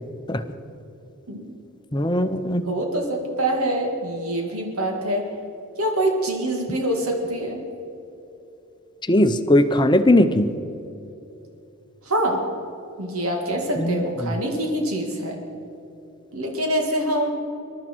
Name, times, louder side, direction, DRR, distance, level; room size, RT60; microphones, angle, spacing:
voice 1, 1.9-2.6 9.1-10.5 13.8-14.3, left 1 dB, 20° left, 10 dB, 0.6 m, -19 dB
voice 2, 2.7-5.3 5.8-7.6 12.0-12.4 13.0-15.4 16.3-17.3, right 1 dB, 85° right, 2 dB, 2.1 m, -25 dB
21.5 x 12.5 x 4.5 m, 2.9 s
head